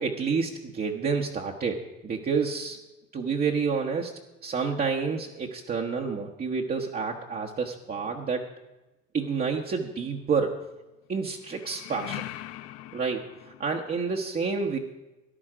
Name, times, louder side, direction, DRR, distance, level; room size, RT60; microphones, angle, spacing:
voice 1, 0.0-2.8 3.1-4.1 4.4-8.5 9.1-10.7 11.1-12.3 12.9-14.8, right 5 dB, 30° right, -1 dB, 1.2 m, -29 dB
sound 1, 9.2-10.0 11.4-14.1, left 15 dB, 55° left, 0.7 m, -42 dB
14.0 x 10.5 x 5.0 m, 1.0 s
supercardioid pair, 105°, 30 cm